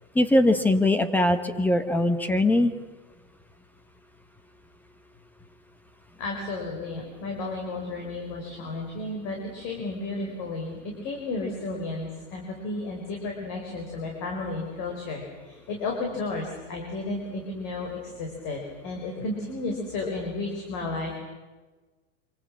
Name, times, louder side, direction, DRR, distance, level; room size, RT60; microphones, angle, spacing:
voice 1, 0.1-2.7, left 1 dB, 5° left, 10 dB, 1.0 m, -21 dB
voice 2, 6.2-21.2, left 2 dB, 40° left, 1 dB, 5.1 m, -33 dB
25.5 x 25.0 x 7.5 m, 1.3 s
supercardioid pair, 160°, 39 cm